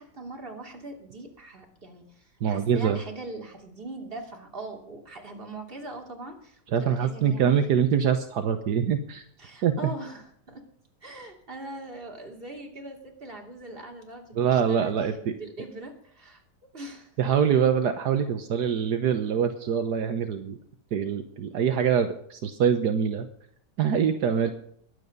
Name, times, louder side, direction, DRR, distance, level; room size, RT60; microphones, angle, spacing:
voice 1, 0.0-7.6 9.4-10.6 11.0-16.4 16.7-17.1, right 2 dB, 30° right, 1 dB, 3.1 m, -41 dB
voice 2, 2.4-3.0 6.7-9.2 9.6-9.7 14.3-15.3 17.2-20.6 20.9-23.3 23.8-24.5, right 8 dB, 75° right, 7 dB, 1.5 m, -24 dB
21.5 x 8.5 x 5.3 m, 0.65 s
omnidirectional pair, 1.8 m